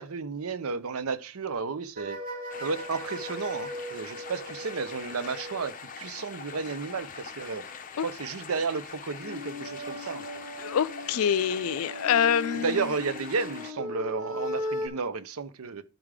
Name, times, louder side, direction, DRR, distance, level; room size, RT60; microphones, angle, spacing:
voice 1, 0.0-2.2 2.6-7.6 8.0-10.2 12.5-15.8, right 5 dB, 80° right, 0.7 m, -33 dB
sound 1, 2.0-5.9 9.2-14.9, left 1 dB, 40° right, 2.6 m, -38 dB
sound 2, 2.5-13.7, left 6 dB, 35° left, 0.7 m, -43 dB
voice 2, 10.6-12.9, left 8 dB, 80° left, 0.4 m, -26 dB
12.0 x 4.9 x 3.6 m
head